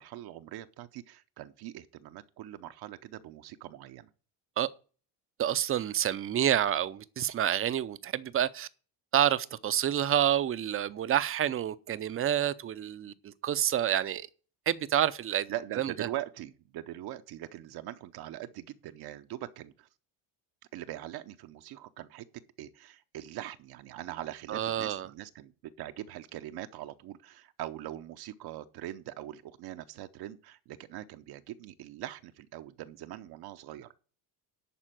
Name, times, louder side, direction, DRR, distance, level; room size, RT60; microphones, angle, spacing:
voice 1, 0.0-4.1 15.5-19.9 20.7-22.3 22.6-33.9, right 13 dB, 60° right, 0.8 m, -42 dB
voice 2, 5.4-8.7 9.1-14.3 14.7-15.9 24.5-25.1, right 10 dB, 30° right, 0.5 m, -28 dB
11.0 x 4.4 x 7.5 m
cardioid pair, 135°, 42 cm